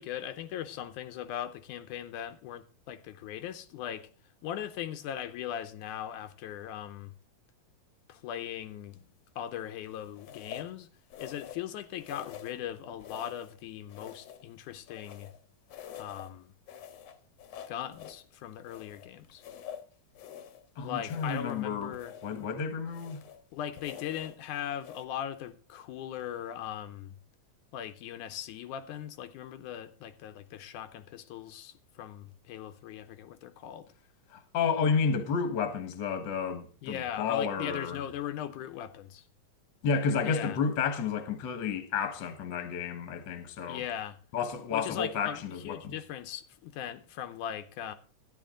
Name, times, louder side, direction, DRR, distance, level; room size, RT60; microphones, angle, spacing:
voice 1, 0.0-4.1 4.4-7.1 8.1-9.0 9.4-10.9 11.2-15.3 16.0-16.5 17.7-19.4 20.8-22.1 23.5-27.2 27.7-33.9 36.8-39.3 40.2-40.6 43.7-44.2 44.7-47.9, left 10 dB, 80° left, 2.2 m, -39 dB
sound 1, 8.9-9.2 10.2-10.8 11.1-11.7 12.0-12.6 13.0-13.6 13.9-15.4 15.7-16.3 16.7-18.2 18.6-20.6 21.0-21.6 21.9-22.5 22.9-23.4 23.8-24.4 24.8-25.0, left 9 dB, 65° left, 1.9 m, -47 dB
voice 2, 20.8-21.9 22.2-23.2 34.3-38.0 39.8-43.8 44.3-45.9, left 6 dB, 45° left, 1.7 m, -31 dB
12.5 x 10.0 x 3.8 m
omnidirectional pair, 3.5 m